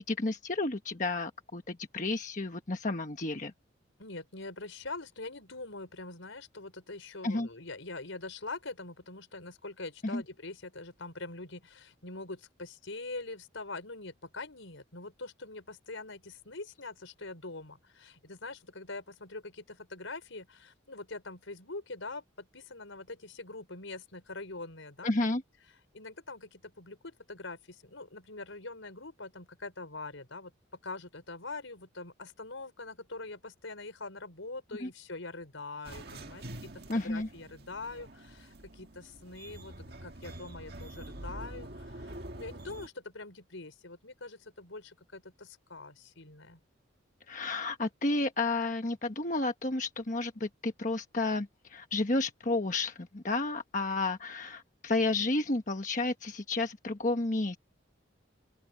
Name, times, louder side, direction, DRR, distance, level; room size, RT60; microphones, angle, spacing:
voice 1, 0.0-3.5 7.2-7.5 10.0-10.2 25.0-25.4 34.8-34.9 36.9-37.3 47.3-57.6, left 2 dB, 40° left, 1.2 m, -31 dB
voice 2, 4.0-25.3 25.9-30.5 30.8-46.6, left 3 dB, 85° left, 5.1 m, -44 dB
sound 1, 35.8-42.9, right 1 dB, 50° right, 1.9 m, -46 dB
open air
head